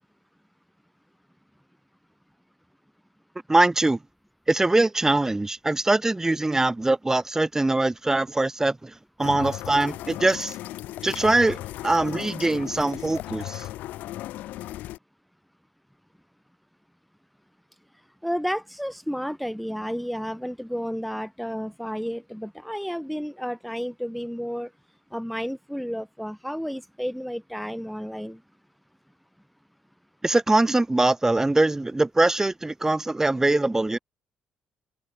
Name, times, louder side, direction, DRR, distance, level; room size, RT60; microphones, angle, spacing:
voice 1, 3.5-4.0 4.5-8.9 9.2-10.6 11.0-13.7 30.2-34.0, right 2 dB, 15° right, 2.5 m, -22 dB
sound 1, 9.2-15.0, left 15 dB, 75° left, 4.0 m, -36 dB
voice 2, 18.2-24.7 25.1-28.4, equal, ahead, 7.8 m, -31 dB
hypercardioid pair, 55°, 3 cm